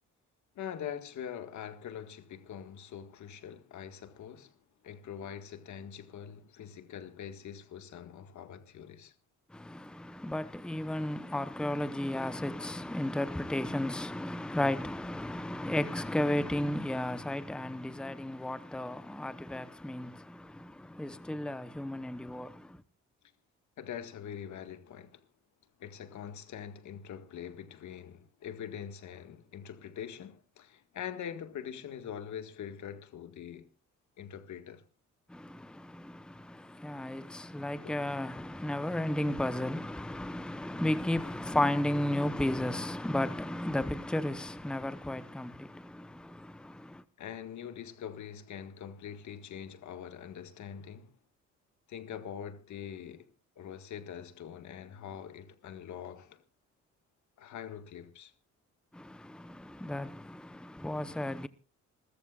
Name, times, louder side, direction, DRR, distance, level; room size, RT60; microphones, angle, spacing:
voice 1, 0.6-4.6 4.8-9.1 23.8-25.3 25.8-33.7 34.2-34.8 37.8-38.0 47.2-51.2 51.9-53.3 53.6-56.4 57.4-58.3, left 8 dB, 70° left, 1.8 m, -43 dB
voice 2, 9.5-22.8 35.3-47.0 58.9-61.5, left 1 dB, 5° left, 0.9 m, -34 dB
27.5 x 14.0 x 2.4 m
cardioid pair, 90°, 30 cm